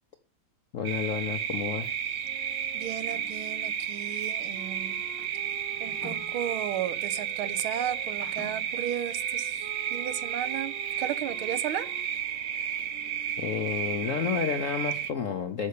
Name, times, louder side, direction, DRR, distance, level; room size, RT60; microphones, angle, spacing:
voice 1, 0.7-2.2 13.4-15.7, left 7 dB, 65° left, 7 dB, 0.8 m, -31 dB
sound 1, 0.8-15.1, right 8 dB, 55° right, 1.0 m, -33 dB
Wind instrument woodwind instrument, 2.2-8.1 8.8-14.6, right 8 dB, 35° right, 1.3 m, -50 dB
voice 2, 2.7-5.0 5.8-11.9, right 10 dB, 80° right, 13 dB, 1.7 m, -34 dB
sound 2, 2.9-3.5 4.5-6.9 8.0-8.7, left 4 dB, 90° left, 3.1 m, -48 dB
13.5 x 5.4 x 6.7 m, 0.39 s
omnidirectional pair, 2.3 m